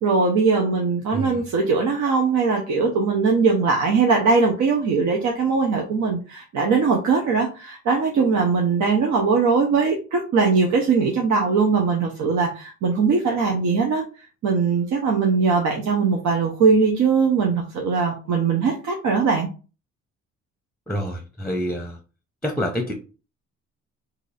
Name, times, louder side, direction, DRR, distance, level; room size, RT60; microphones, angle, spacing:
voice 1, 0.0-14.0 14.4-19.5, right 4 dB, 70° right, 1 dB, 0.9 m, -20 dB
voice 2, 20.9-22.0 22.4-22.9, equal, 5° left, 3 dB, 0.7 m, -27 dB
2.9 x 2.7 x 4.1 m, 0.33 s
cardioid pair, 90°, 30 cm